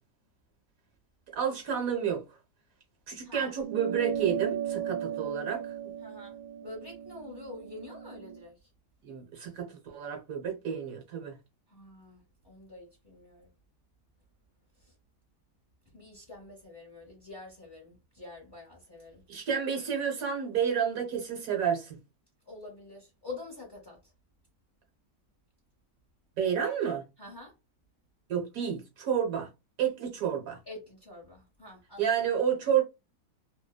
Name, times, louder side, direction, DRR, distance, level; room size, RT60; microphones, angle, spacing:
voice 1, 1.3-2.2 3.1-5.9 9.0-11.4 19.3-22.0 26.4-27.0 28.3-29.5 29.8-30.6 32.0-32.8, right 8 dB, 60° right, 1.2 m, -30 dB
voice 2, 3.2-3.5 6.0-8.7 11.7-13.5 14.8-14.9 15.9-19.2 22.5-24.0 26.6-26.7 27.2-27.5 30.7-32.1, left 2 dB, 20° left, 0.7 m, -46 dB
sound 1, 3.6-8.4, right 9 dB, 80° right, 1.2 m, -36 dB
2.8 x 2.1 x 2.2 m
omnidirectional pair, 1.8 m